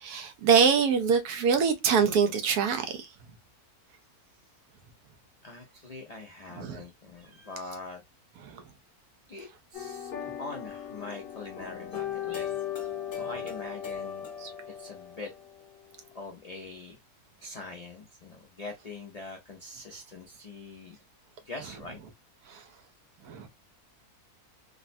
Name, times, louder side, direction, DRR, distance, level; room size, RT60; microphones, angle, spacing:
voice 1, 0.0-3.1 6.6-6.8 8.5-8.6 14.4-14.5 22.5-22.6 23.3-23.5, right 6 dB, 80° right, 1.1 m, -24 dB
voice 2, 5.4-8.0 9.3-10.1 10.4-12.7 13.1-14.3 14.8-15.3 16.1-17.0 17.4-21.0 21.4-22.0, left 3 dB, 80° left, 0.3 m, -43 dB
sound 1, 9.7-15.7, left 9 dB, 45° left, 0.9 m, -37 dB
3.6 x 2.1 x 2.5 m
omnidirectional pair, 1.6 m